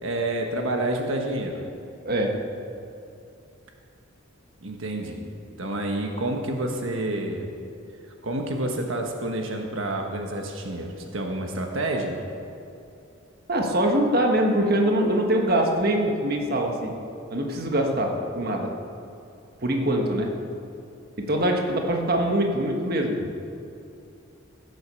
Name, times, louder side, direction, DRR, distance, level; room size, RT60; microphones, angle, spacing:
voice 1, 0.0-1.6 4.6-5.3 5.6-7.5 8.2-12.2, right 1 dB, 75° right, 2 dB, 1.3 m, -28 dB
voice 2, 13.5-16.9 17.3-18.7 19.6-20.3 21.2-23.2, right 1 dB, 50° right, 2 dB, 1.5 m, -23 dB
16.0 x 7.9 x 6.9 m, 2.7 s
head